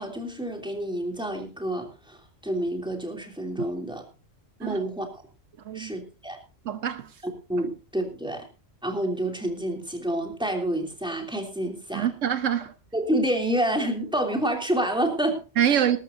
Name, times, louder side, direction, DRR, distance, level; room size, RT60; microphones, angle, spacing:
voice 1, 0.0-4.0 4.6-5.1 5.7-6.4 7.5-8.4 8.8-12.1 12.9-15.4 15.7-15.8, right 1 dB, 5° right, 2.9 m, -28 dB
voice 2, 6.6-7.1 11.9-12.7 15.6-16.0, right 9 dB, 80° right, 1.3 m, -25 dB
20.0 x 13.0 x 2.7 m
omnidirectional pair, 1.3 m